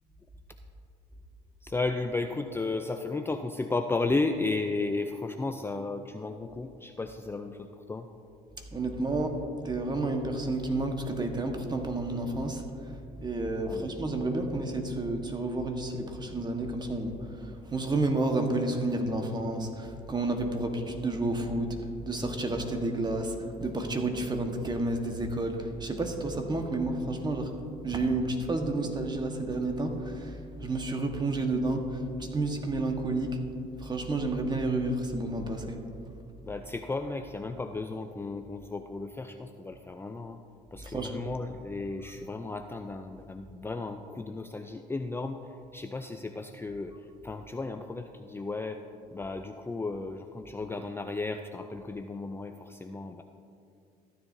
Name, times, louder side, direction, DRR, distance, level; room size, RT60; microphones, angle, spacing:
voice 1, 1.6-8.1 13.7-14.0 36.4-40.4 40.7-48.8 49.1-53.2, left 3 dB, 15° left, 6 dB, 0.4 m, -34 dB
voice 2, 8.7-9.4 9.6-12.6 13.2-17.1 17.4-21.7 22.0-23.3 23.6-27.5 27.8-30.4 30.6-33.4 33.8-35.8 40.8-41.2, right 2 dB, 25° right, 4 dB, 1.3 m, -30 dB
14.0 x 10.0 x 2.7 m, 2.5 s
supercardioid pair, 80°, 18 cm